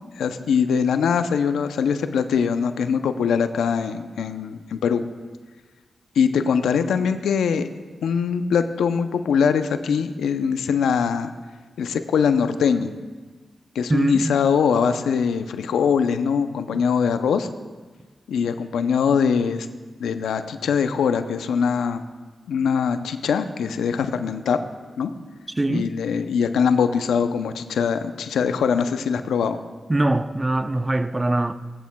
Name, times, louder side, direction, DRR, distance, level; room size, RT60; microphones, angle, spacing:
voice 1, 0.2-5.0 6.2-7.7 8.0-11.3 11.8-12.9 13.8-17.5 18.3-19.7 20.0-22.0 22.5-24.6 25.0-25.1 25.7-29.6, left 6 dB, 90° left, 0.5 m, -22 dB
voice 2, 13.9-14.4 16.7-16.8 25.6-25.9 29.9-31.5, right 2 dB, 25° right, 0.6 m, -22 dB
20.0 x 9.4 x 2.3 m
supercardioid pair, 45°, 0 cm